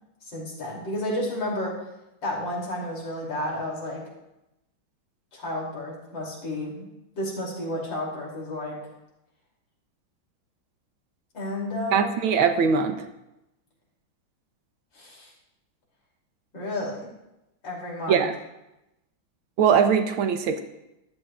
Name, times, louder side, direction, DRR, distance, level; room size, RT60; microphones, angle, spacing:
voice 1, 0.2-1.8 2.2-4.0 5.3-6.9 7.2-8.8 11.3-12.1 14.9-15.3 16.5-17.1 17.6-18.3, left 1 dB, 65° left, -3 dB, 3.7 m, -31 dB
voice 2, 11.9-13.0 18.1-18.3 19.6-20.6, right 6 dB, 85° right, 7 dB, 1.7 m, -21 dB
14.5 x 11.5 x 2.5 m, 0.91 s
omnidirectional pair, 2.2 m